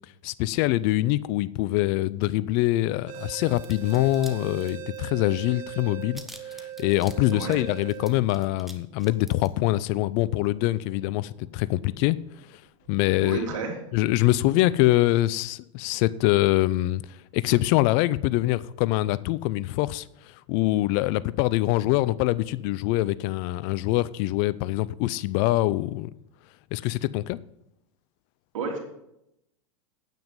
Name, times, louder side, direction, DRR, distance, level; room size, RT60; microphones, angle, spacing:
voice 1, 0.2-6.2 6.8-12.2 12.9-13.4 13.9-17.0 17.3-20.0 20.5-26.1 26.7-27.4, left 17 dB, 50° left, 0.5 m, -24 dB
sound 1, 3.1-12.3 12.8-12.9 13.5-13.7, right 11 dB, 50° right, 1.2 m, -41 dB
sound 2, 3.6-4.3 4.6-5.2 5.5-5.6 5.8-8.7 9.0-9.5, equal, ahead, 1.2 m, -46 dB
voice 2, 13.2-13.8 28.5-28.8, right 4 dB, 75° right, 3.4 m, -31 dB
9.3 x 9.2 x 5.3 m
hypercardioid pair, 105°, 17 cm